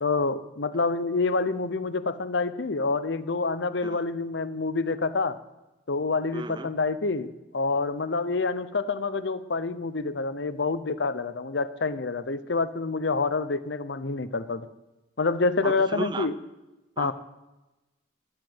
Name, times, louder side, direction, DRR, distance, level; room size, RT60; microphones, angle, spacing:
voice 1, 0.0-5.3 5.9-14.6 15.2-16.3 17.0-17.1, left 3 dB, 70° left, 13 dB, 0.7 m, -27 dB
voice 2, 6.3-6.7 15.6-16.3 17.0-17.1, right 2 dB, 25° right, 12 dB, 0.5 m, -34 dB
11.5 x 7.8 x 8.9 m, 1.0 s
head